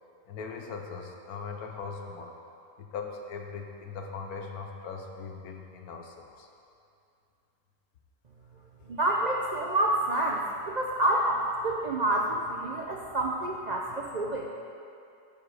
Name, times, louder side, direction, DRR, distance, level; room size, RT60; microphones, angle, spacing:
voice 1, 0.3-2.3 2.8-6.5, left 5 dB, 75° left, 3 dB, 1.3 m, -40 dB
voice 2, 8.9-14.5, right 1 dB, 60° right, -1 dB, 0.4 m, -28 dB
13.5 x 4.9 x 4.8 m, 2.6 s
omnidirectional pair, 1.7 m